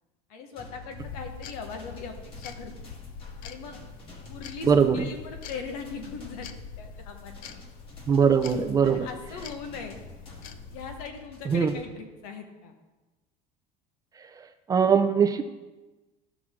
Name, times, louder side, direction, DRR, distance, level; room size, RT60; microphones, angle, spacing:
voice 1, 0.3-2.9 3.4-3.8 4.3-7.6 8.9-10.0 10.7-12.7, left 5 dB, 90° left, 5 dB, 1.4 m, -40 dB
sound 1, 0.6-11.9, left 2 dB, 30° left, 1.5 m, -48 dB
sound 2, 1.0-11.1, left 6 dB, 50° left, 0.6 m, -45 dB
voice 2, 4.6-5.1 8.1-9.1 11.5-11.7 14.2-15.4, right 6 dB, 20° right, 8 dB, 0.5 m, -22 dB
12.5 x 6.1 x 3.7 m, 1.2 s
cardioid pair, 150°, 18 cm